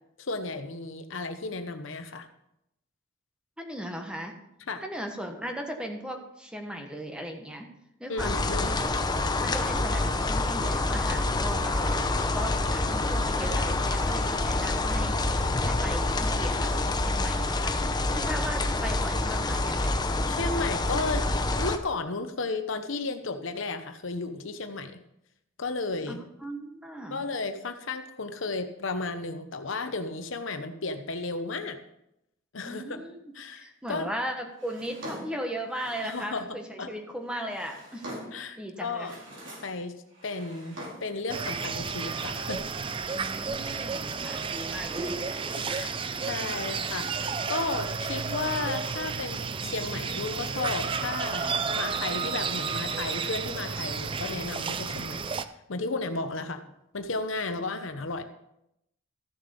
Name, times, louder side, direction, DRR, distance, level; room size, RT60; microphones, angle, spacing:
voice 1, 0.2-2.3 4.7-4.8 8.1-8.7 20.3-21.3 21.6-25.0 25.6-26.2 27.1-31.8 32.5-33.0 33.3-34.1 36.0-36.9 38.3-39.1 39.6-39.9 40.2-42.6 45.6-55.3 55.7-56.6 56.9-58.2, left 3 dB, 70° left, 8 dB, 0.9 m, -34 dB
voice 2, 3.6-4.3 4.8-7.7 8.0-9.0 9.4-17.8 18.1-20.1 26.1-26.2 26.4-27.2 32.6-38.1 38.6-39.1 43.1-45.1, equal, 5° right, 3 dB, 1.3 m, -37 dB
Ambient Light Rain, 8.2-21.8, left 2 dB, 20° left, 0.7 m, -27 dB
Drawer open or close, 34.6-36.4 37.2-38.5 38.9-39.8 40.1-41.2, equal, 65° right, 4.3 m, -44 dB
sound 1, 41.3-55.4, right 5 dB, 25° right, 0.4 m, -32 dB
14.0 x 7.2 x 5.2 m, 0.82 s
head